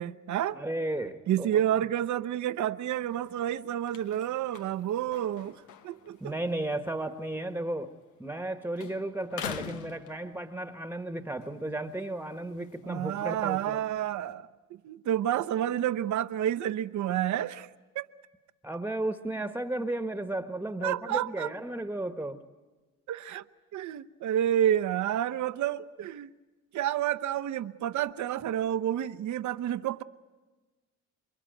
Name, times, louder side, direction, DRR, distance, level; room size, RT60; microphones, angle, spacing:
voice 1, 0.0-0.6 1.3-5.6 5.8-6.3 12.8-14.5 14.8-17.7 17.9-18.1 20.8-21.5 23.1-23.4 23.7-26.3 26.7-30.0, right 11 dB, 70° right, 0.9 m, -29 dB
voice 2, 0.5-1.6 6.2-7.9 8.2-13.8 18.6-22.4, right 1 dB, 5° right, 1.4 m, -34 dB
sound 1, 2.8-8.5 8.8-10.8 11.3-14.3, left 9 dB, 90° left, 1.4 m, -46 dB
28.0 x 23.0 x 9.2 m
cardioid pair, 90°, 30 cm